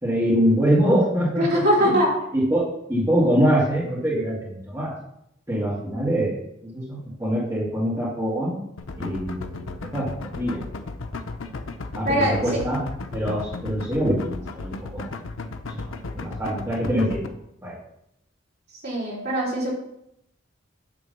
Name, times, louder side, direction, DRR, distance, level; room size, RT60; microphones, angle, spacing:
voice 1, 0.0-1.9 2.3-2.6 2.9-4.9 5.5-8.6 9.0-9.6 9.9-10.6 12.0-12.8 13.1-15.2 15.7-17.2 17.6-17.8, equal, 15° right, -8 dB, 2.1 m, -24 dB
voice 2, 1.4-2.1 12.0-12.3 18.8-19.7, equal, 55° right, -6 dB, 3.5 m, -21 dB
sound 1, 8.8-17.3, left 3 dB, 90° left, 0.7 m, -34 dB
8.9 x 3.8 x 6.7 m, 0.77 s
head